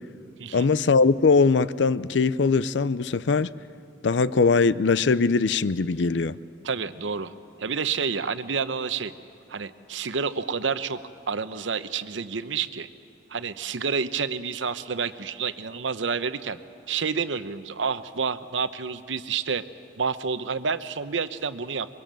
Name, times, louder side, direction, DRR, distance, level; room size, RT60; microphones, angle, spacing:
voice 1, 0.5-3.5 4.0-6.4, left 4 dB, 70° left, 0.5 m, -21 dB
voice 2, 6.6-9.1 9.5-11.0 11.3-12.9 13.3-16.6 16.9-19.6 20.0-21.9, right 5 dB, 85° right, 0.9 m, -29 dB
23.5 x 23.0 x 7.5 m
head